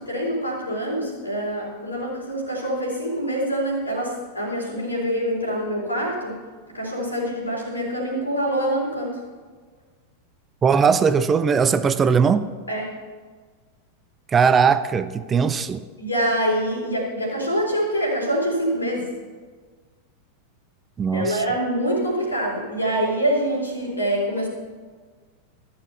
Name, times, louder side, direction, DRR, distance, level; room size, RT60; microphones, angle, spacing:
voice 1, 0.0-6.4 6.7-9.2 12.7-12.9 16.0-19.1 21.1-24.5, equal, 80° left, -3 dB, 3.6 m, -25 dB
voice 2, 10.6-12.4 14.3-15.8 21.0-21.4, right 6 dB, 20° right, 12 dB, 0.5 m, -19 dB
14.0 x 6.9 x 6.8 m, 1.5 s
figure-of-eight pair, 90°, 0 cm